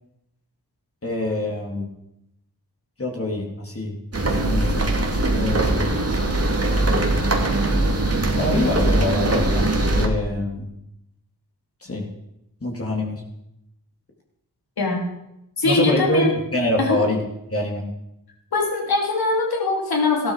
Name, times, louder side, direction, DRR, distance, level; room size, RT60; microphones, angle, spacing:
voice 1, 1.0-1.9 3.0-4.0 4.2-4.9 5.3-6.1 8.4-10.7 11.8-12.0 12.6-13.2 15.6-17.2 17.5-17.8, left 1 dB, 35° left, 0 dB, 3.5 m, -25 dB
sound 1, 4.1-10.1, right 2 dB, 40° right, 2.6 m, -21 dB
voice 2, 15.6-16.3 16.8-17.0 18.5-20.3, left 3 dB, 70° left, 0 dB, 3.5 m, -21 dB
14.0 x 12.0 x 5.1 m, 0.83 s
cardioid pair, 45°, 38 cm